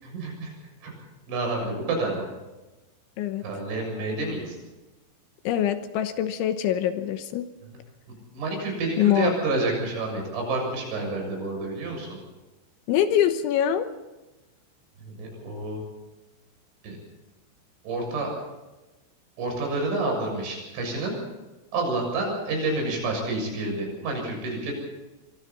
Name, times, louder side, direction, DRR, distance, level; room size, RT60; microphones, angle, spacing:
voice 1, 0.0-0.5 0.8-1.0 1.3-2.2 3.4-4.6 8.3-12.2 15.0-15.8 16.8-17.0 17.8-18.3 19.4-21.2 21.7-24.7, right 2 dB, 70° right, 1 dB, 9.5 m, -29 dB
voice 2, 5.4-7.5 9.0-9.3 12.9-13.9, left 10 dB, 80° left, 9 dB, 3.3 m, -24 dB
25.0 x 24.5 x 4.2 m, 1.1 s
omnidirectional pair, 5.7 m